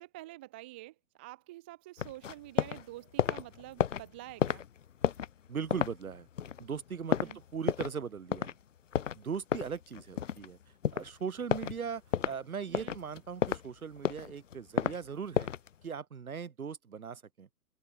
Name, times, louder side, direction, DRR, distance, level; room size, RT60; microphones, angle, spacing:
voice 1, 0.0-4.6 7.2-7.4 12.7-13.0, right 17 dB, 5° right, 0.6 m, -48 dB
sound 1, 2.0-2.8 3.1-8.0 8.3-8.5 8.9-10.5 10.8-11.1 11.5-11.8 12.1-12.4 12.7-13.7 14.0-15.0 15.3-15.7, left 8 dB, 50° left, 0.8 m, -31 dB
voice 2, 5.5-6.3 6.6-8.5 9.1-10.6 10.9-15.5 15.8-17.5, right 6 dB, 55° right, 6.9 m, -39 dB
open air
figure-of-eight pair, 130°, 49 cm